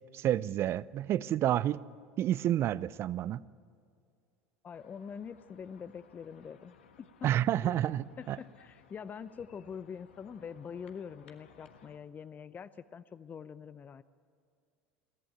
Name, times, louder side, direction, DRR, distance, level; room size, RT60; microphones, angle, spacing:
voice 1, 0.1-1.8 2.2-3.4 7.2-8.4, right 12 dB, 45° right, 0.5 m, -29 dB
voice 2, 4.6-6.7 7.2-7.3 7.6-7.8 8.2-14.0, left 7 dB, 30° left, 0.6 m, -44 dB
sound 1, 4.7-12.0, left 7 dB, 80° left, 1.4 m, -61 dB
22.0 x 14.5 x 8.9 m
hypercardioid pair, 75°, 6 cm